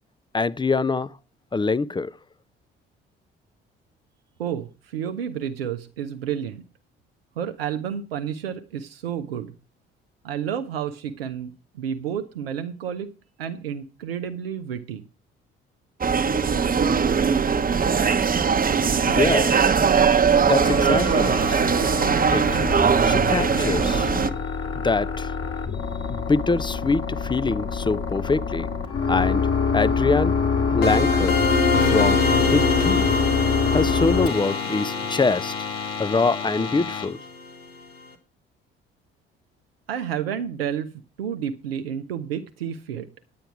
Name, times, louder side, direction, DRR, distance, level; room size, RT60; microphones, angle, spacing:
voice 1, 0.3-1.1 1.5-2.1 19.0-19.7 20.4-21.6 22.3-22.6 23.0-24.1 24.7-25.3 26.1-28.7 29.1-29.5 29.7-30.4 30.7-31.4 31.8-33.2 33.7-35.5 36.0-37.2, left 3 dB, 15° left, 0.6 m, -24 dB
voice 2, 4.4-6.6 7.4-9.5 10.2-13.1 13.4-15.0 39.9-40.9 41.2-43.1, right 8 dB, 90° right, 0.6 m, -30 dB
sound 1, 16.0-24.3, right 6 dB, 30° right, 0.9 m, -20 dB
sound 2, 20.6-37.1, left 5 dB, 50° left, 2.8 m, -26 dB
sound 3, 30.8-37.5, left 3 dB, 90° left, 1.4 m, -25 dB
9.5 x 9.0 x 5.9 m
hypercardioid pair, 50°, 29 cm